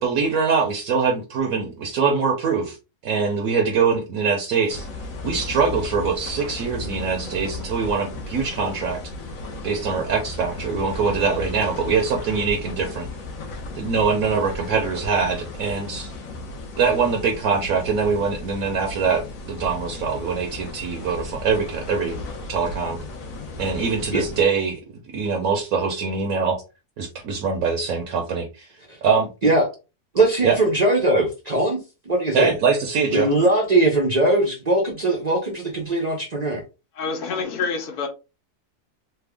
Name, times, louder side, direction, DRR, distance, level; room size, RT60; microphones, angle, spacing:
voice 1, 0.0-2.8 3.0-4.9 5.2-9.0 9.6-13.1 13.8-16.1 16.8-22.1 22.5-23.0 23.6-24.8 25.1-26.6 27.0-28.7 29.0-29.3 30.4-30.6 32.3-33.3, right 5 dB, 70° right, 1.1 m, -23 dB
sound 1, 4.7-24.4, left 3 dB, 65° left, 1.1 m, -35 dB
voice 2, 30.1-31.8 32.1-32.5 33.1-36.6, right 2 dB, 50° right, 0.5 m, -20 dB
voice 3, 36.9-38.1, left 5 dB, 80° left, 1.3 m, -27 dB
3.4 x 2.1 x 3.4 m
omnidirectional pair, 1.6 m